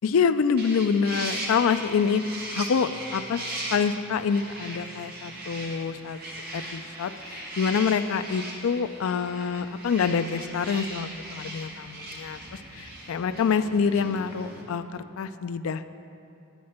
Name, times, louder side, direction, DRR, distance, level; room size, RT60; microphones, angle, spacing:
voice 1, 0.0-2.2 2.6-3.4 3.7-6.2 6.5-12.4 12.8-15.9, left 6 dB, 70° left, 11 dB, 0.4 m, -26 dB
sound 1, 0.6-14.6, right 1 dB, 45° right, 1.2 m, -38 dB
10.0 x 8.5 x 4.3 m, 2.8 s
head